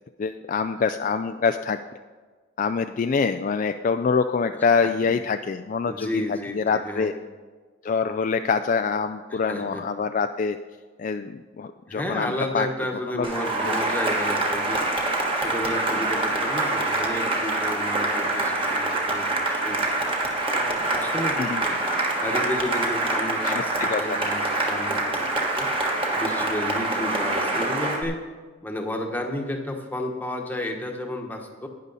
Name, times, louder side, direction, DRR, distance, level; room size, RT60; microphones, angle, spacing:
voice 1, 0.2-1.8 2.6-7.1 7.8-10.6 11.0-12.7 13.1-13.3 13.6-13.7 21.4-21.6 23.4-24.2, left 5 dB, 40° left, 8 dB, 0.3 m, -25 dB
voice 2, 4.8-5.1 5.9-7.1 9.3-9.8 11.9-14.8 15.4-19.8 20.5-21.8 22.2-25.2 25.5-25.7 26.1-28.2 28.6-31.7, left 1 dB, 10° left, 2 dB, 1.2 m, -32 dB
Cheering / Applause, 13.2-28.0, right 2 dB, 25° right, 1.4 m, -25 dB
11.5 x 9.7 x 4.0 m, 1.4 s
head